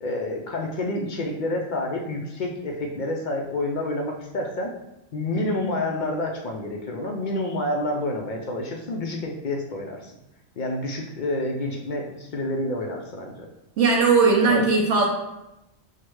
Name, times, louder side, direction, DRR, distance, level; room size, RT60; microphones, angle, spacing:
voice 1, 0.0-4.7 5.1-10.2 10.6-13.4 14.5-14.7, left 1 dB, 65° left, 1 dB, 0.4 m, -28 dB
voice 2, 13.8-15.1, right 4 dB, 70° right, -2 dB, 0.9 m, -18 dB
6.4 x 2.2 x 3.0 m, 0.92 s
omnidirectional pair, 1.3 m